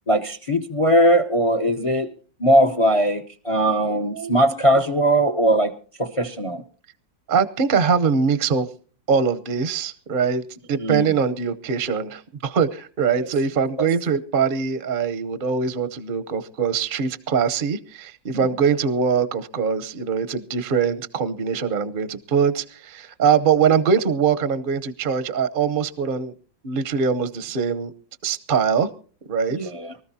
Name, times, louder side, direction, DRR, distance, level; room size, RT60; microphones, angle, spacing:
voice 1, 0.1-2.1 2.4-5.7 6.0-6.6 10.8-11.1 13.2-13.3 13.8-13.9 18.3-18.5 29.5-29.9, right 1 dB, 35° left, 11 dB, 0.5 m, -20 dB
voice 2, 3.9-4.4 7.3-8.7 9.1-10.4 10.7-26.3 26.6-27.9 28.2-28.9 29.3-29.7, right 6 dB, 40° right, 12 dB, 0.7 m, -22 dB
24.0 x 14.0 x 2.8 m, 0.40 s
omnidirectional pair, 2.0 m